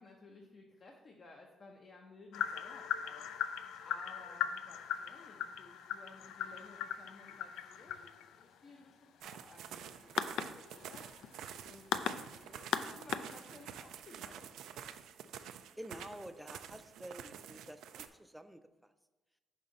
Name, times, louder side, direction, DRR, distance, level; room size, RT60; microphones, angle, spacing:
voice 1, 0.0-3.3 3.8-11.1 11.6-14.5, left 3 dB, 50° left, 1 dB, 0.7 m, -57 dB
sound 1, 2.3-13.8, left 9 dB, 80° left, 0.3 m, -39 dB
sound 2, 9.2-18.1, right 9 dB, 80° right, 0.3 m, -49 dB
voice 2, 15.8-18.6, right 1 dB, 5° right, 10 dB, 0.4 m, -49 dB
5.5 x 5.2 x 3.8 m, 1.2 s
cardioid pair, 90°, 0 cm